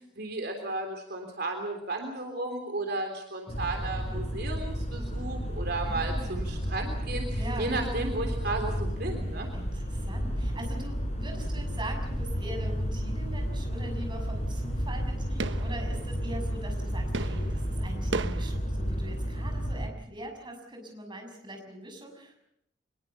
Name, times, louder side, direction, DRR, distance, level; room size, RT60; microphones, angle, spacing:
voice 1, 0.2-9.5, right 2 dB, 60° right, 4 dB, 3.5 m, -34 dB
sound 1, 3.5-19.9, equal, 35° left, 5.2 m, -32 dB
voice 2, 5.8-6.7 7.4-7.7 9.5-22.4, right 1 dB, 25° right, 3 dB, 6.8 m, -42 dB
sound 2, 12.1-12.5 12.8-18.6, right 3 dB, 75° right, 1.2 m, -38 dB
25.0 x 21.5 x 7.1 m, 0.75 s
head